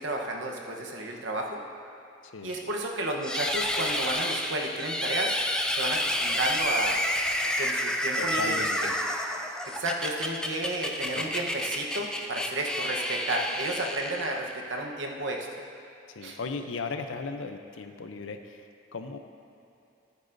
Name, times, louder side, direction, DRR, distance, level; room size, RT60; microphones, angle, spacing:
voice 1, 0.0-1.6 2.4-5.4 5.7-7.0 7.6-8.6 9.7-15.5 16.2-16.4, right 1 dB, 70° right, 0 dB, 1.0 m, -32 dB
voice 2, 2.2-2.7 8.1-9.0 11.2-11.3 16.1-19.2, left 4 dB, 85° left, 7 dB, 0.6 m, -37 dB
sound 1, 3.2-14.5, left 1 dB, 5° left, 0.4 m, -30 dB
13.5 x 9.0 x 2.6 m, 2.8 s
head